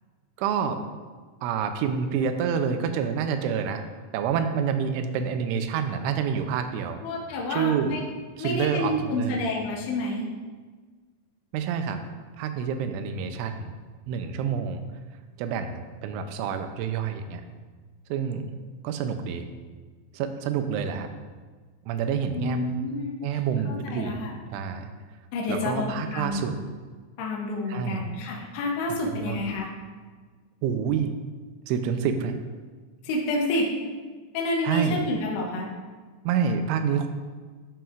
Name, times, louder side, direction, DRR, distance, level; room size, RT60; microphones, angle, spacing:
voice 1, 0.4-0.8 1.4-3.8 4.1-7.0 7.5-8.0 8.4-9.4 11.5-12.0 12.4-13.7 14.1-14.8 15.4-17.4 18.1-18.4 18.8-19.5 20.1-21.1 21.9-22.7 23.2-24.2 24.5-24.9 25.5-26.5 27.7-28.0 29.2-29.4 30.6-31.1 31.7-32.3 34.6-35.0 36.3-37.1, right 7 dB, 85° right, 7 dB, 2.9 m, -27 dB
voice 2, 7.0-8.0 8.4-10.2 22.3-23.2 23.7-24.3 25.3-26.4 27.2-29.7 33.0-33.7 34.3-35.7, left 2 dB, 75° left, -2 dB, 2.6 m, -29 dB
12.0 x 5.8 x 2.5 m, 1.4 s
omnidirectional pair, 5.5 m